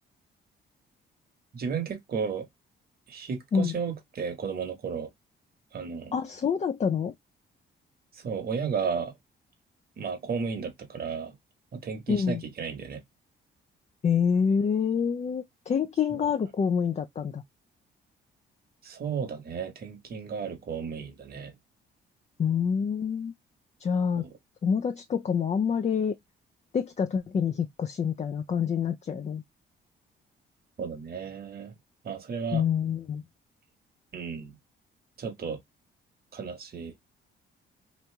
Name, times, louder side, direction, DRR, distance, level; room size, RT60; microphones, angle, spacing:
voice 1, 1.5-2.5 3.1-5.1 5.7-6.1 8.1-9.1 10.0-11.3 11.7-13.0 16.1-16.3 18.8-21.5 24.2-24.3 30.8-31.7 32.0-32.6 34.1-34.6 35.2-35.6 36.3-36.9, right 6 dB, 50° right, 1.3 m, -33 dB
voice 2, 6.1-7.1 12.1-12.4 14.0-17.4 22.4-23.3 23.8-24.3 24.6-26.1 26.7-29.4 32.5-33.2, left 7 dB, 35° left, 0.5 m, -27 dB
3.1 x 2.6 x 3.2 m
cardioid pair, 90°, 20 cm